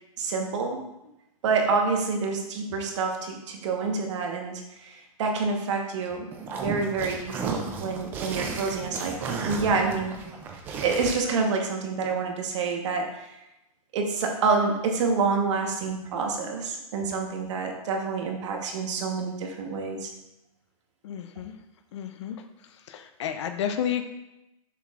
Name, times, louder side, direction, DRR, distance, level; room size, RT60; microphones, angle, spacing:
voice 1, 0.2-0.8 1.4-6.2 6.5-10.2 10.8-13.3 13.9-20.1, right 4 dB, 50° right, 2 dB, 1.2 m, -27 dB
sound 1, 6.3-11.1, right 4 dB, 10° right, 0.3 m, -33 dB
voice 2, 21.0-21.5 21.9-22.4 22.9-24.0, left 9 dB, 50° left, 8 dB, 0.5 m, -31 dB
6.9 x 6.2 x 2.5 m, 0.91 s
hypercardioid pair, 165°, 19 cm